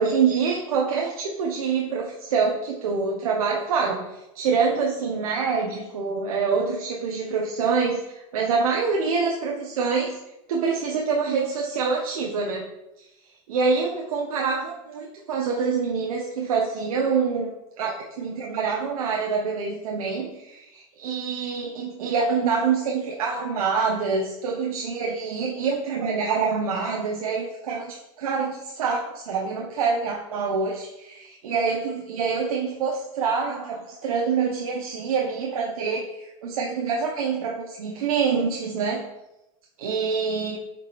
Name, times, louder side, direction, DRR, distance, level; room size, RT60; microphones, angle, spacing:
voice 1, 0.0-10.2 10.5-12.7 13.5-39.1 39.8-40.6, right 5 dB, 90° right, 0 dB, 1.2 m, -26 dB
7.3 x 5.2 x 4.3 m, 0.93 s
supercardioid pair, 145°, 18 cm